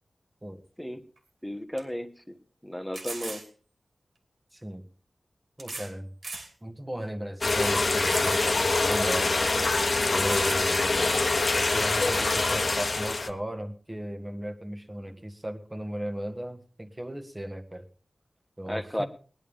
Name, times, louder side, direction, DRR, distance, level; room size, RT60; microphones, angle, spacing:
sound 1, 1.2-1.3 1.8-1.9 2.9-3.5 4.6-4.7 5.6-5.9 6.2-6.5 7.0-7.1 8.1-8.5 8.9-9.0 9.8-9.9 10.2-10.9 12.1-12.3, right 3 dB, 70° right, 2.6 m, -38 dB
voice 1, 1.4-2.3 2.6-3.4 18.7-19.1, equal, 5° left, 8 dB, 1.2 m, -34 dB
voice 2, 4.5-4.8 5.6-6.1 6.6-9.4 10.1-11.3 11.5-17.9 18.6-19.1, right 1 dB, 15° right, 6 dB, 1.5 m, -36 dB
sound 2, 7.4-13.3, left 3 dB, 50° left, 1.2 m, -25 dB
20.0 x 11.0 x 3.6 m, 0.40 s
wide cardioid pair, 110°, 0 cm